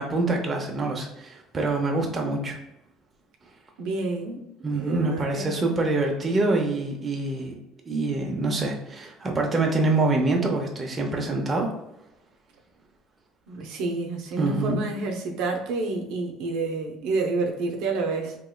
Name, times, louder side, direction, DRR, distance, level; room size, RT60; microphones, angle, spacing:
voice 1, 0.0-2.6 4.6-7.5 7.9-11.7 14.4-14.8, right 2 dB, 20° right, 1 dB, 0.6 m, -25 dB
voice 2, 3.8-4.4 4.7-5.6 13.5-18.4, right 3 dB, 75° right, 2 dB, 0.6 m, -29 dB
3.5 x 2.9 x 2.2 m, 0.87 s
cardioid pair, 145°, 0 cm